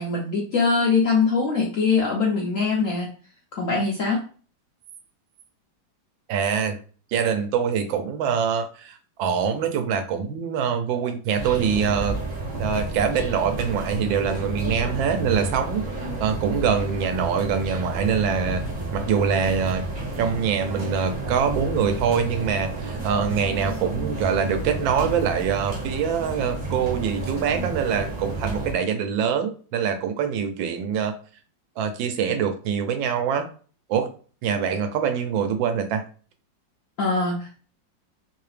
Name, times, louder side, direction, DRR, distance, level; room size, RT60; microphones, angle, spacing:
voice 1, 0.0-3.1 3.6-4.2 37.0-37.6, left 4 dB, 70° left, -1 dB, 0.8 m, -22 dB
voice 2, 6.3-6.8 7.1-12.2 12.6-15.8 16.2-19.9 20.2-31.1 31.8-33.5 33.9-34.1 34.4-36.0, right 7 dB, 80° right, 8 dB, 1.3 m, -24 dB
sound 1, 11.4-28.7, right 2 dB, 40° right, 0.7 m, -31 dB
3.2 x 2.8 x 3.2 m, 0.40 s
omnidirectional pair, 2.1 m